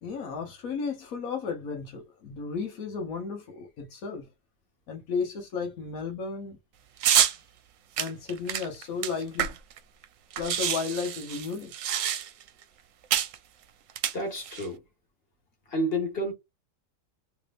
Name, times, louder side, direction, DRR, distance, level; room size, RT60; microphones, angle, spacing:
voice 1, 0.0-4.3 4.9-6.6 8.0-9.6 10.4-11.7, left 5 dB, 90° left, 1.5 m, -34 dB
sound 1, 7.0-7.4 8.0-9.8 10.0-10.1 10.3-12.5 13.1-13.4 13.9-14.7, right 10 dB, 75° right, 1.0 m, -27 dB
voice 2, 14.1-14.8 15.7-16.3, equal, 45° left, 1.8 m, -29 dB
3.4 x 3.4 x 2.4 m
omnidirectional pair, 1.4 m